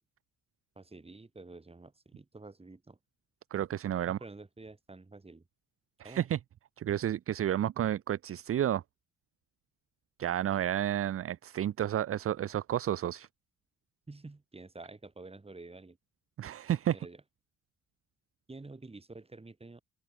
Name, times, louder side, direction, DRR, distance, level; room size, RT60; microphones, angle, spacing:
voice 1, 0.8-3.0 4.1-5.4 6.0-6.3 14.1-16.0 16.9-17.2 18.5-19.8, right 3 dB, 20° right, 7.1 m, -49 dB
voice 2, 3.5-4.2 6.0-6.4 6.8-8.8 10.2-13.3 16.4-17.0, right 11 dB, 50° right, 0.7 m, -31 dB
open air
cardioid pair, 90°, 30 cm